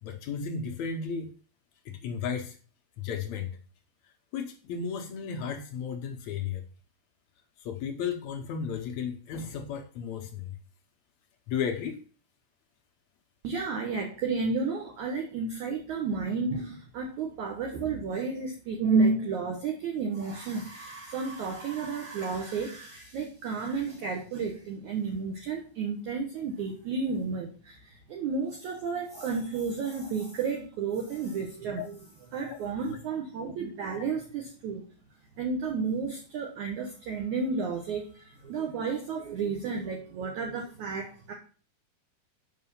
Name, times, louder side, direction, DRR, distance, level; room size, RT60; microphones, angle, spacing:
voice 1, 0.0-1.3 1.8-2.6 3.0-3.6 4.3-6.6 7.6-10.6 11.5-12.0 31.8-31.9 32.4-32.6, left 6 dB, 75° left, 4 dB, 1.6 m, -34 dB
voice 2, 13.4-32.0 32.3-34.8 35.4-41.3, right 4 dB, 65° right, 1 dB, 2.3 m, -32 dB
8.5 x 5.7 x 5.5 m, 0.39 s
omnidirectional pair, 4.3 m